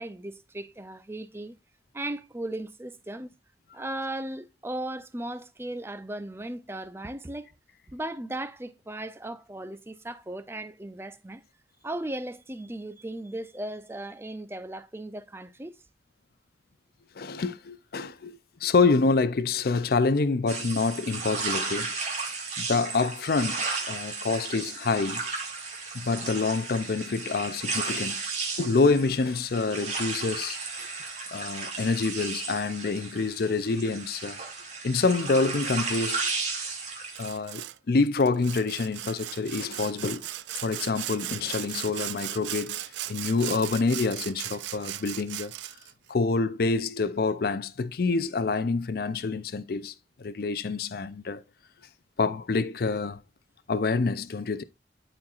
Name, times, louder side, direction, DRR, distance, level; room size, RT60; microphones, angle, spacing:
voice 1, 0.0-1.6 1.9-3.3 3.7-7.5 7.9-11.4 11.8-15.8, right 1 dB, 15° right, 0.5 m, -37 dB
voice 2, 17.2-21.9 22.6-25.2 25.9-28.2 28.6-30.9 31.3-34.4 34.8-36.3 37.2-40.3 40.6-42.8 43.1-45.5 46.1-49.9 50.2-51.4 52.2-53.2 53.7-54.6, left 4 dB, 55° left, 0.5 m, -27 dB
sound 1, 20.5-37.3, right 4 dB, 40° right, 2.0 m, -34 dB
Sawing, 37.2-37.8 38.2-45.9, right 14 dB, 80° right, 0.4 m, -37 dB
12.5 x 4.5 x 2.4 m
head